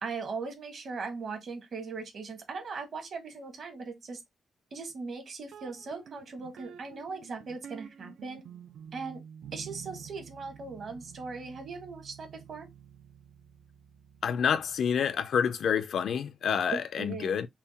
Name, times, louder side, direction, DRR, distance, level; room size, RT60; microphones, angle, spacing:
voice 1, 0.0-4.2 4.7-8.4 8.9-9.2 9.5-12.7 16.7-17.4, right 4 dB, 50° right, 1.4 m, -39 dB
sound 1, 5.5-15.2, right 8 dB, 75° right, 0.4 m, -50 dB
voice 2, 14.2-17.5, left 7 dB, 60° left, 0.4 m, -28 dB
5.7 x 2.2 x 4.2 m
wide cardioid pair, 170°, 0 cm